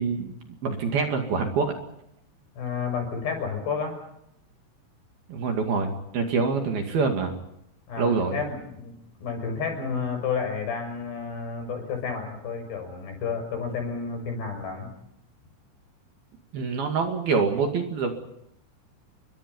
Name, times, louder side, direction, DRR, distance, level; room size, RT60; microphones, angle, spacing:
voice 1, 0.0-1.7 5.3-7.3 8.0-8.4 16.5-18.1, right 5 dB, 55° right, 4 dB, 3.8 m, -26 dB
voice 2, 2.5-4.0 7.9-8.9 9.2-14.9, left 5 dB, 60° left, 5 dB, 8.3 m, -31 dB
30.0 x 24.0 x 5.5 m, 0.78 s
omnidirectional pair, 5.7 m